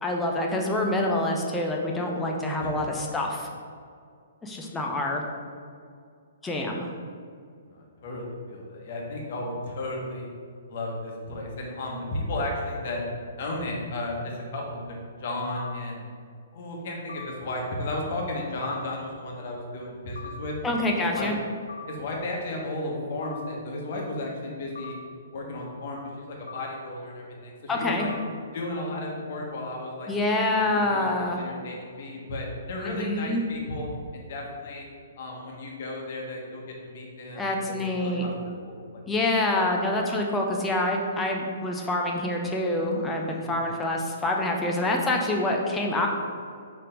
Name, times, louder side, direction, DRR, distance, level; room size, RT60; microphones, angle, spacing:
voice 1, 0.0-3.5 4.4-5.2 6.4-6.9 20.6-21.3 27.7-28.1 30.1-31.4 32.8-33.4 37.3-38.3 39.1-46.1, left 1 dB, 10° left, 0 dB, 0.7 m, -26 dB
voice 2, 7.7-10.3 10.7-13.1 13.4-16.0 16.5-20.6 21.0-21.3 21.9-25.0 25.3-28.1 28.5-30.1 30.5-34.9 35.2-38.3 38.6-39.2 43.4-43.6, left 1 dB, 50° left, -1 dB, 1.2 m, -34 dB
sound 1, 15.6-15.7 17.1-17.2 18.6-18.8 20.2-20.3 21.7-21.8 23.2-23.4 24.8-24.9 26.5-26.6 28.0-28.2, left 6 dB, 75° left, 0.6 m, -39 dB
5.7 x 3.3 x 5.1 m, 2.2 s
figure-of-eight pair, 120°, 0 cm